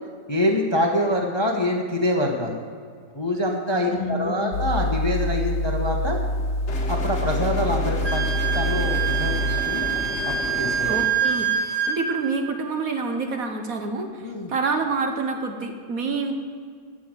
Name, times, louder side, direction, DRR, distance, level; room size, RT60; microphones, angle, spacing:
voice 1, 0.3-2.6 3.1-6.2 6.9-9.8 10.3-10.9 14.2-14.5, left 1 dB, 20° left, 1 dB, 0.9 m, -25 dB
voice 2, 3.9-4.6 10.9-11.5 11.9-16.4, right 3 dB, 55° right, 5 dB, 1.4 m, -27 dB
sound 1, 4.5-9.6, left 1 dB, 70° left, 1.3 m, -26 dB
sound 2, 6.7-11.1, left 3 dB, 45° left, 1.4 m, -32 dB
Wind instrument woodwind instrument, 8.0-12.0, right 8 dB, 85° right, 2.6 m, -25 dB
16.0 x 6.2 x 7.6 m, 2.1 s
omnidirectional pair, 1.9 m